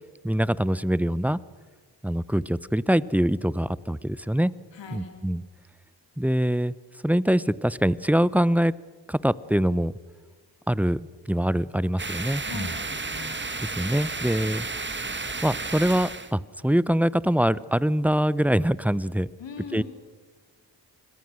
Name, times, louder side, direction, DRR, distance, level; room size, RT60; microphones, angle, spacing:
voice 1, 0.2-1.4 2.0-4.5 4.9-5.4 6.2-6.7 7.0-8.7 9.1-9.9 10.7-11.0 11.3-12.7 13.6-14.7 15.4-19.3 19.7-19.8, equal, 5° right, 19 dB, 0.7 m, -24 dB
voice 2, 4.7-5.2 12.4-13.4 19.4-19.8, left 5 dB, 65° left, 3 dB, 4.4 m, -41 dB
sound 1, 12.0-16.3, right 3 dB, 25° right, 1.7 m, -32 dB
28.5 x 21.5 x 6.4 m, 1.4 s
supercardioid pair, 50°, 47 cm